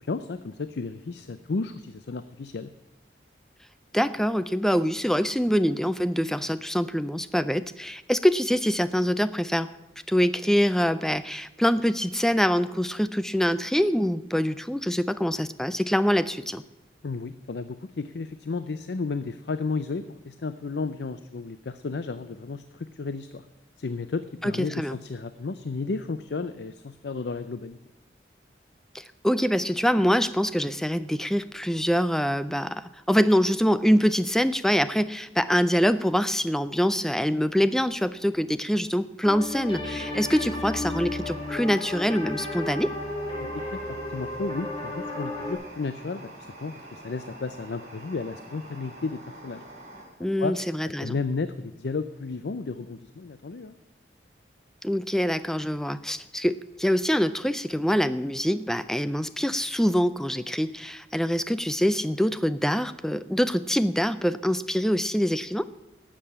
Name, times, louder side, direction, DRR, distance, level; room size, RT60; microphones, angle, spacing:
voice 1, 0.0-2.7 17.0-23.4 23.8-27.8 43.4-49.6 50.4-50.6 51.0-53.7, left 4 dB, 70° left, 12 dB, 0.5 m, -33 dB
voice 2, 3.9-9.7 10.1-16.6 24.4-25.0 28.9-42.9 50.2-51.2 54.8-65.6, equal, 5° left, 14 dB, 0.4 m, -25 dB
sound 1, 39.2-45.5, left 2 dB, 30° left, 3.0 m, -33 dB
sound 2, 40.1-50.0, right 1 dB, 40° right, 4.4 m, -46 dB
12.5 x 7.6 x 8.6 m, 1.0 s
head